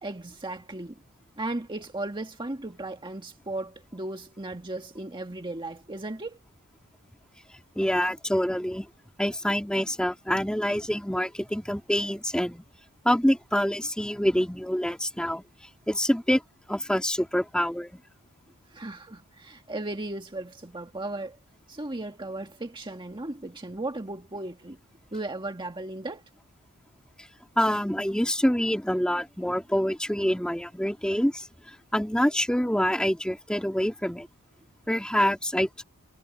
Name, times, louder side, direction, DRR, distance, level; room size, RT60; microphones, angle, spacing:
voice 1, 0.0-1.0 1.4-6.4 18.7-21.4 21.7-24.8 25.1-26.2, right 2 dB, 20° right, 1.7 m, -36 dB
voice 2, 7.8-8.9 9.2-12.6 13.0-15.4 15.9-16.4 16.7-18.0 27.6-31.5 31.9-34.3 34.9-35.8, equal, 5° left, 2.3 m, -26 dB
head